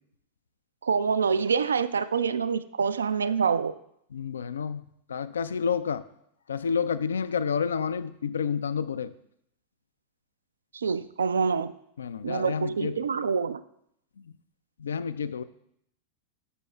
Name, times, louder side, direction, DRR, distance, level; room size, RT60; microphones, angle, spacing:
voice 1, 0.8-3.7 10.7-11.7 12.2-13.6, right 6 dB, 70° right, 15 dB, 0.3 m, -26 dB
voice 2, 4.1-4.8 5.1-6.1 6.5-9.1 12.0-13.0 14.8-15.4, left 6 dB, 70° left, 15 dB, 0.3 m, -29 dB
11.0 x 6.7 x 2.3 m, 0.75 s
figure-of-eight pair, 90°, 0 cm